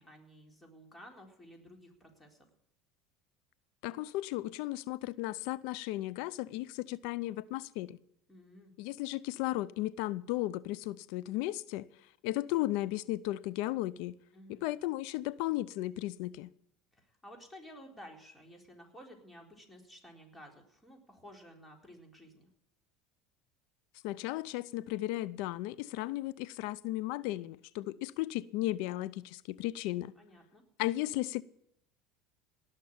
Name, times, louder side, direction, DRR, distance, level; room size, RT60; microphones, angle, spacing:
voice 1, 0.0-2.4 8.3-8.7 14.3-14.7 16.9-22.5 30.2-30.6, equal, 15° left, 4.1 m, -53 dB
voice 2, 3.8-8.0 8.8-11.9 12.2-14.2 14.5-16.5 24.0-30.1 30.8-31.4, left 16 dB, 70° left, 0.5 m, -35 dB
18.5 x 6.6 x 8.7 m
supercardioid pair, 90°, 0 cm